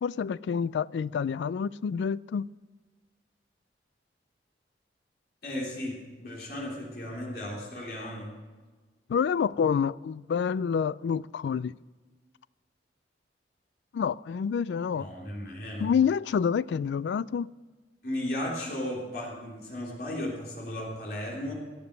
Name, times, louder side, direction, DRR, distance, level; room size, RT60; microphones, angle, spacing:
voice 1, 0.0-2.5 9.1-11.7 13.9-15.1 15.8-17.5, left 7 dB, 80° left, 0.3 m, -28 dB
voice 2, 5.4-8.3 15.0-15.9 18.0-21.5, left 1 dB, 60° left, 3.4 m, -35 dB
17.5 x 7.1 x 6.7 m
head